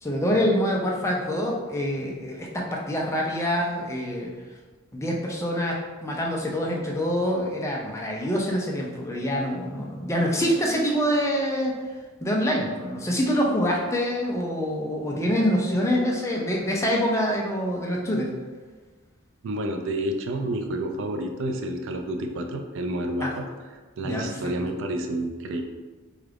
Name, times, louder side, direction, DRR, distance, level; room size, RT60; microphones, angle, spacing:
voice 1, 0.0-4.3 4.9-11.8 12.2-18.3 23.2-23.3 24.0-24.3, equal, 15° left, -1 dB, 0.4 m, -25 dB
voice 2, 19.4-23.5 24.0-25.6, right 1 dB, 60° right, 4 dB, 0.4 m, -29 dB
3.8 x 2.4 x 3.4 m, 1.3 s
head